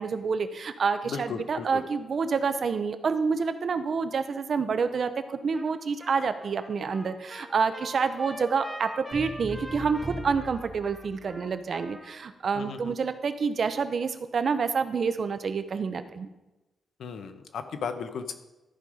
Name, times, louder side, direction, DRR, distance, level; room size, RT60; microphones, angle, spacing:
voice 1, 0.0-16.3, right 5 dB, 50° right, 10 dB, 0.7 m, -28 dB
voice 2, 1.0-1.8 12.5-12.9 17.0-18.3, left 6 dB, 75° left, 9 dB, 0.9 m, -35 dB
Trumpet, 5.5-5.7 6.0-12.2, equal, 5° left, 1.4 m, -44 dB
sound 1, 9.1-11.6, right 1 dB, 15° right, 3.2 m, -40 dB
13.5 x 5.5 x 4.9 m, 1.0 s
wide cardioid pair, 130°, 0 cm